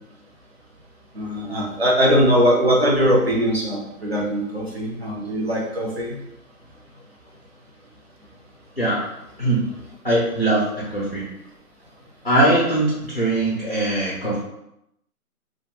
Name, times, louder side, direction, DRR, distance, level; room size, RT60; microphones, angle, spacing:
voice 1, 1.1-6.2, equal, 45° right, -2 dB, 0.5 m, -20 dB
voice 2, 10.0-10.6 10.9-11.2 12.2-14.4, right 1 dB, 40° left, -6 dB, 0.4 m, -20 dB
2.3 x 2.2 x 2.8 m, 0.81 s
figure-of-eight pair, 170°, 46 cm